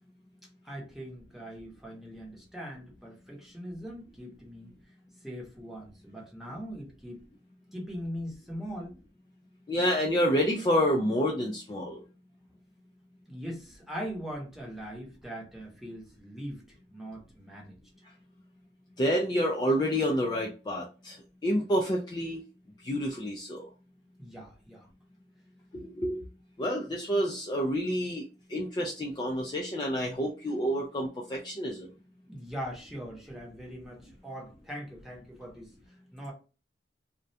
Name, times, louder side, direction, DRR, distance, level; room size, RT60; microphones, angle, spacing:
voice 1, 0.6-4.7 5.2-7.2 7.7-9.0 13.3-17.8 24.2-24.9 32.3-35.7 36.1-36.3, equal, ahead, -2 dB, 0.8 m, -41 dB
voice 2, 9.7-12.0 19.0-21.2 21.4-22.4 22.8-23.6 25.7-26.2 26.6-28.2 28.5-31.9, equal, 25° left, -1 dB, 0.3 m, -28 dB
2.3 x 2.1 x 2.6 m, 0.33 s
head